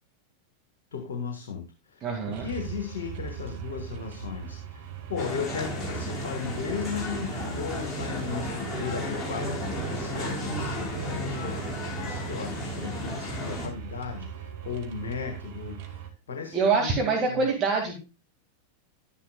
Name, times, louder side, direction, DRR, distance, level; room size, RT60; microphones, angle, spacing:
voice 1, 0.9-11.6 12.0-17.5, left 6 dB, 65° left, 5 dB, 1.5 m, -36 dB
voice 2, 2.0-2.5 16.5-17.9, right 4 dB, 30° right, 0 dB, 2.1 m, -25 dB
sound 1, 2.3-16.1, right 9 dB, 50° right, 1.5 m, -40 dB
sound 2, 5.2-13.7, left 1 dB, 15° left, 5.0 m, -34 dB
11.5 x 10.0 x 2.4 m, 0.30 s
figure-of-eight pair, 90°, 0 cm